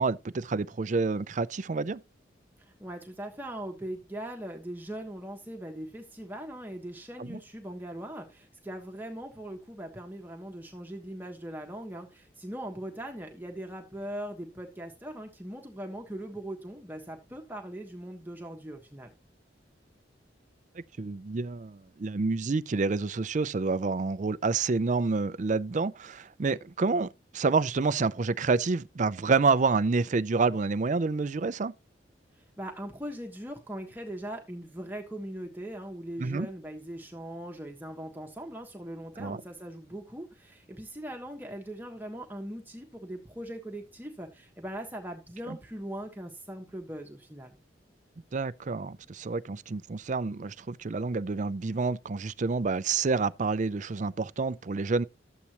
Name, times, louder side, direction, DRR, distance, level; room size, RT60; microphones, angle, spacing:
voice 1, 0.0-2.0 7.2-7.4 21.0-31.7 36.2-36.5 39.2-39.4 45.5-45.6 48.3-55.0, right 4 dB, 45° right, 0.5 m, -28 dB
voice 2, 2.6-19.1 32.6-47.6, right 1 dB, 10° right, 1.3 m, -40 dB
13.0 x 8.4 x 3.0 m
head